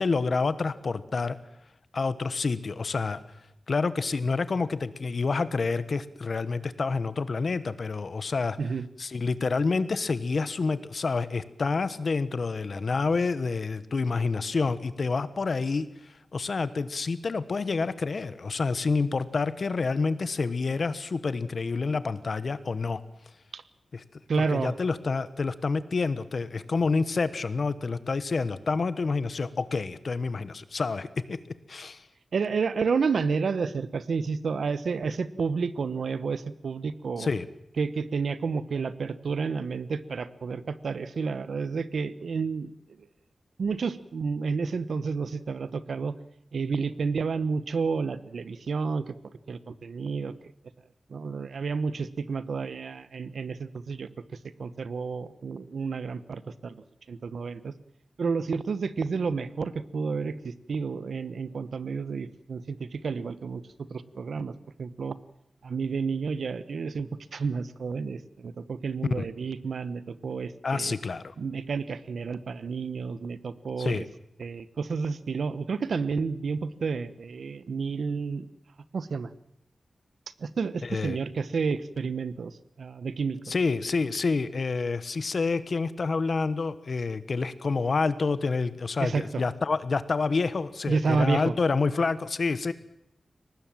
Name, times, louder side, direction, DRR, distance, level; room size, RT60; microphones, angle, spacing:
voice 1, 0.0-1.4 1.9-3.2 3.7-8.6 9.0-23.0 23.9-24.0 24.4-31.4 31.7-32.0 37.2-37.5 69.2-69.3 70.6-71.3 73.8-74.1 80.8-81.2 83.5-92.7, left 4 dB, 55° left, 14 dB, 1.2 m, -28 dB
voice 2, 24.3-24.7 32.3-37.3 37.8-42.7 43.6-46.2 46.5-49.2 49.5-50.3 51.1-54.1 54.6-57.7 58.2-65.2 65.6-70.9 71.4-74.0 74.4-78.5 78.9-79.3 80.4-83.4 89.0-89.4 90.9-91.5, right 5 dB, 85° right, 15 dB, 1.0 m, -30 dB
23.5 x 19.0 x 7.6 m, 0.78 s
wide cardioid pair, 130°, 0 cm